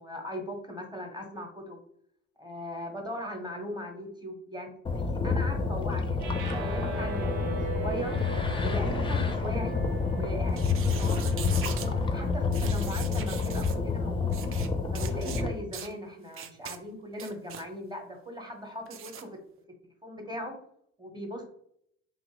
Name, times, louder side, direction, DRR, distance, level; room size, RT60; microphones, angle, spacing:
voice 1, 0.0-1.8 2.4-4.7 5.0-8.1 8.6-9.8 10.1-14.6 14.9-19.4 20.0-20.6 21.0-21.4, equal, 15° right, 3 dB, 1.0 m, -39 dB
sound 1, 4.9-15.5, left 4 dB, 15° left, 0.4 m, -28 dB
sound 2, 6.2-12.5, right 5 dB, 80° right, 0.8 m, -40 dB
sound 3, 10.5-11.9 12.5-13.8 14.3-14.7 14.9-15.4 15.7-15.9 16.3-16.8 17.1-17.7 18.9-19.2, right 8 dB, 45° right, 0.4 m, -41 dB
3.2 x 2.5 x 3.0 m, 0.68 s
hypercardioid pair, 60°, 31 cm